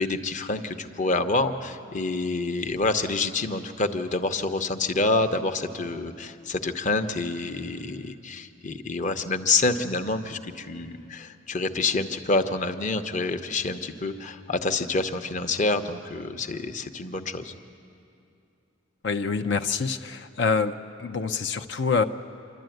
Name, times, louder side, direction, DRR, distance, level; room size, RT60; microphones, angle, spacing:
voice 1, 0.0-17.5, left 3 dB, 40° left, 8 dB, 0.9 m, -27 dB
voice 2, 19.0-22.0, left 5 dB, 65° left, 7 dB, 0.6 m, -26 dB
27.0 x 12.0 x 9.2 m, 2.6 s
head